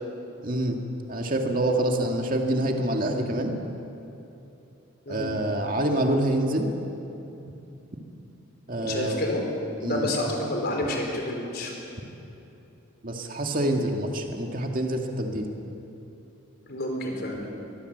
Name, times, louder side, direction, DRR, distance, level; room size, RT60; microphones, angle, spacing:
voice 1, 0.4-0.8 1.1-3.5 5.1-6.7 8.7-9.2 9.8-10.1 13.0-15.5, right 1 dB, 40° right, 2 dB, 2.2 m, -26 dB
voice 2, 8.7-9.4 9.8-11.7 16.7-17.5, left 1 dB, 45° left, 1 dB, 4.6 m, -29 dB
23.5 x 21.5 x 8.1 m, 2.9 s
head